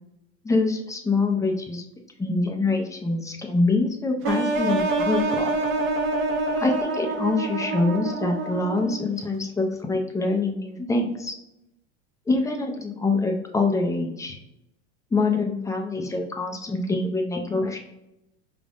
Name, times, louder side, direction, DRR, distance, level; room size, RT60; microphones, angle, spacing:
voice 1, 0.4-1.8 2.2-5.5 6.6-11.3 12.3-14.4 15.1-17.8, left 3 dB, 10° left, 2 dB, 0.6 m, -25 dB
sound 1, 4.2-9.1, right 2 dB, 35° right, 0.8 m, -26 dB
5.0 x 3.5 x 2.5 m, 0.87 s
supercardioid pair, 115°, 36 cm